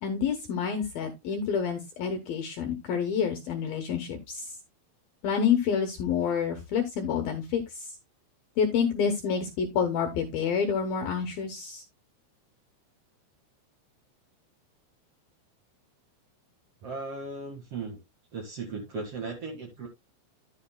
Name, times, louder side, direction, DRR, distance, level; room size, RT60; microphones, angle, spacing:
voice 1, 0.0-4.5 5.2-7.9 8.6-11.8, left 7 dB, 80° left, 2.1 m, -28 dB
voice 2, 16.8-18.0 18.3-19.9, right 3 dB, 65° right, 1.5 m, -37 dB
12.0 x 8.3 x 2.2 m
omnidirectional pair, 5.9 m